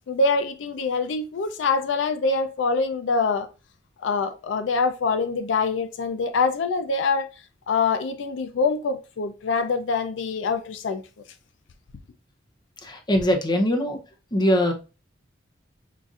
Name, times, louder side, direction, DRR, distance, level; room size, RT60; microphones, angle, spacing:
voice 1, 0.1-3.5 4.0-7.3 7.7-11.0, left 4 dB, 75° left, 0.4 m, -24 dB
voice 2, 12.8-14.0 14.3-14.7, equal, 25° left, 0.6 m, -21 dB
5.5 x 2.5 x 2.4 m
head